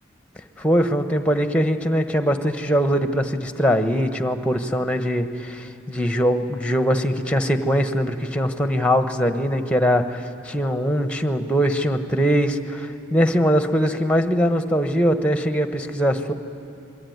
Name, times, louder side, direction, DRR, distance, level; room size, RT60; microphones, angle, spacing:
voice 1, 0.6-16.3, equal, 5° left, 8 dB, 1.1 m, -21 dB
28.0 x 22.0 x 9.5 m, 2.7 s
head